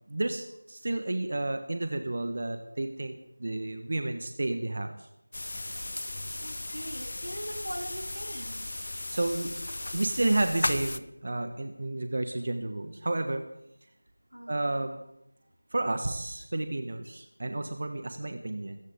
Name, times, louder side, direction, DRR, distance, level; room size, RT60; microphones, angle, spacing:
voice 1, 0.1-5.1 9.1-9.5 9.9-13.4 14.5-15.0 15.7-18.8, right 2 dB, 35° right, 7 dB, 1.2 m, -31 dB
sound 1, 5.3-11.0, left 2 dB, 45° left, 0.8 m, -36 dB
voice 2, 6.4-8.6 14.3-14.8, equal, 85° right, 3 dB, 3.1 m, -41 dB
25.5 x 14.5 x 3.7 m, 0.82 s
figure-of-eight pair, 170°, 0 cm